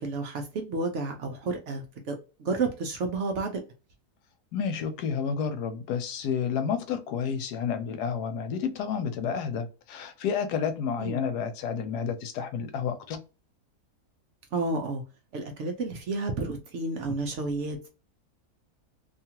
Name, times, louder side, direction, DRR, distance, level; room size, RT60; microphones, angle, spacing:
voice 1, 0.0-3.6 11.0-11.2 14.5-15.0 15.3-17.9, right 3 dB, 65° right, 0.8 m, -31 dB
voice 2, 4.5-13.2, left 7 dB, 85° left, 1.2 m, -30 dB
2.7 x 2.3 x 2.8 m
omnidirectional pair, 1.7 m